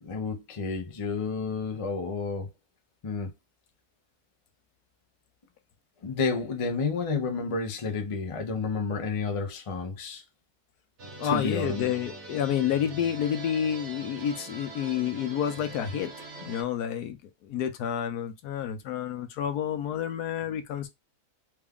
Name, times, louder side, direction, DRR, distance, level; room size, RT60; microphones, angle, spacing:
voice 1, 0.0-2.5 3.0-3.3 6.0-10.2 11.3-11.9, left 4 dB, 40° left, 0.4 m, -30 dB
sound 1, 11.0-16.6, right 3 dB, 55° right, 1.2 m, -43 dB
voice 2, 11.2-16.1 16.4-17.2 17.4-20.9, left 9 dB, 85° left, 1.2 m, -29 dB
3.4 x 2.3 x 3.5 m
omnidirectional pair, 1.6 m